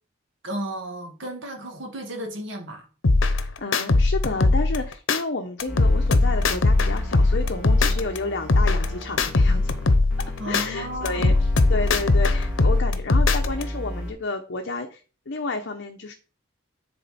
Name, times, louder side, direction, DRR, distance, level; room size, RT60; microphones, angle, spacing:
voice 1, 0.4-2.9 10.4-11.4, right 1 dB, 75° right, 1.9 m, -33 dB
sound 1, 3.0-5.2 5.6-8.2 8.5-10.7 11.1-13.6, left 2 dB, 90° left, 0.9 m, -20 dB
voice 2, 3.2-9.7 10.5-15.0 15.3-16.1, left 3 dB, 65° left, 0.9 m, -31 dB
sound 2, 5.7-12.8 13.4-14.1, left 1 dB, 5° right, 2.9 m, -34 dB
9.9 x 4.3 x 4.2 m
head